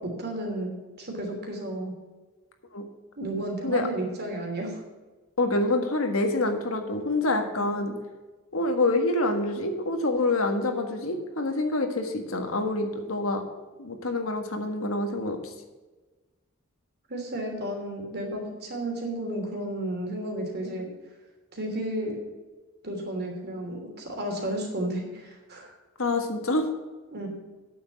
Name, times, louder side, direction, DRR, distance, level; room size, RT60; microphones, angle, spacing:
voice 1, 0.2-0.7 1.0-1.9 3.2-4.8 7.6-7.9 17.1-20.9 21.5-22.2 22.8-25.7 27.1-27.3, right 1 dB, 50° right, 1 dB, 3.1 m, -32 dB
voice 2, 5.4-7.9 8.5-13.4 13.8-15.5 26.0-26.7, left 2 dB, 70° left, 5 dB, 1.6 m, -26 dB
9.5 x 7.1 x 6.9 m, 1.3 s
head